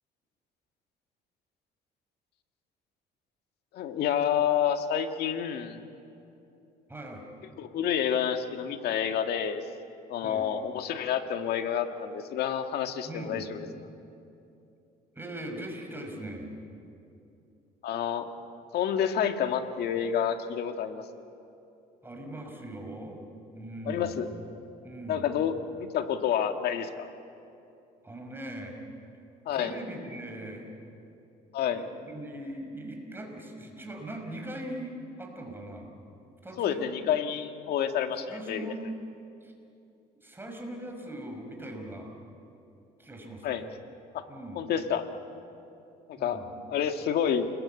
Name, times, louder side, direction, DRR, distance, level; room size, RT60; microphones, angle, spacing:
voice 1, 3.7-5.8 7.6-9.6 10.1-13.7 17.8-18.3 18.7-21.0 23.9-24.3 25.1-27.1 29.5-29.8 31.5-31.8 36.6-38.7 43.4-43.6 44.1-44.2 44.6-45.1 46.1-46.4 46.7-47.5, left 8 dB, 70° left, 6 dB, 1.8 m, -29 dB
voice 2, 6.9-7.2 10.2-10.5 13.1-13.5 15.1-16.5 22.0-23.2 23.5-24.2 24.8-25.3 28.0-28.8 29.5-30.7 31.7-35.9 36.4-36.9 38.3-38.8 39.4-39.5 40.2-42.1 43.0-43.5 44.3-44.6 46.2-46.5, right 1 dB, 15° right, 2 dB, 5.6 m, -40 dB
29.5 x 21.0 x 8.8 m, 2.7 s
cardioid pair, 110°, 17 cm